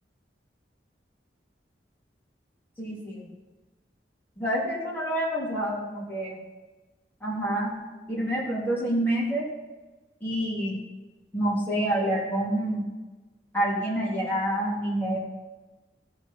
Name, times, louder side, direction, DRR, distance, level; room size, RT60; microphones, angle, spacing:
voice 1, 2.8-3.3 4.4-6.4 7.2-7.7 8.1-9.4 10.2-10.8 11.3-12.8 13.5-15.2, right 1 dB, 10° left, -6 dB, 2.9 m, -27 dB
15.5 x 5.2 x 5.8 m, 1.2 s
head